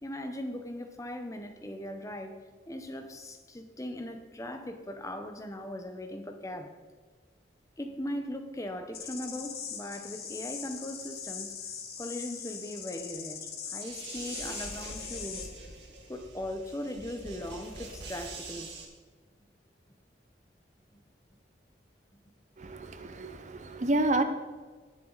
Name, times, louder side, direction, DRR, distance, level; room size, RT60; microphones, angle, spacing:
voice 1, 0.0-6.8 7.8-11.6 12.0-15.5 16.1-18.7, left 1 dB, 20° left, 0.8 m, -39 dB
sound 1, 8.9-15.5, left 7 dB, 55° left, 1.4 m, -41 dB
sound 2, 13.8-18.9, right 3 dB, 75° right, 2.5 m, -44 dB
voice 2, 22.6-24.2, right 2 dB, 40° right, 0.7 m, -29 dB
19.0 x 6.9 x 4.0 m
head